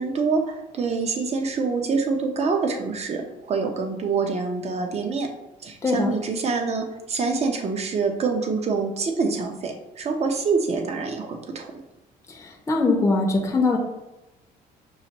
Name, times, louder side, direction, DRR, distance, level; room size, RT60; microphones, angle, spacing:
voice 1, 0.0-5.3 5.6-11.7, right 4 dB, 40° right, 4 dB, 0.7 m, -26 dB
voice 2, 12.7-13.8, left 3 dB, 15° left, 1 dB, 0.7 m, -21 dB
5.6 x 2.5 x 2.9 m, 0.96 s
cardioid pair, 110°, 17 cm